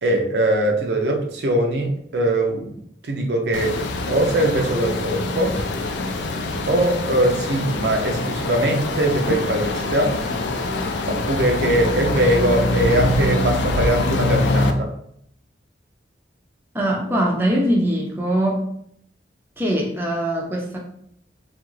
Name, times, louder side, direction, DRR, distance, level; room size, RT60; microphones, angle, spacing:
voice 1, 0.0-5.6 6.7-10.2 11.1-14.9, right 1 dB, 70° right, 3 dB, 0.5 m, -21 dB
sound 1, 3.5-14.7, left 2 dB, 85° left, 0.4 m, -24 dB
voice 2, 16.7-18.7 19.6-20.8, right 1 dB, 10° right, -2 dB, 0.4 m, -22 dB
2.9 x 2.4 x 3.0 m, 0.69 s
head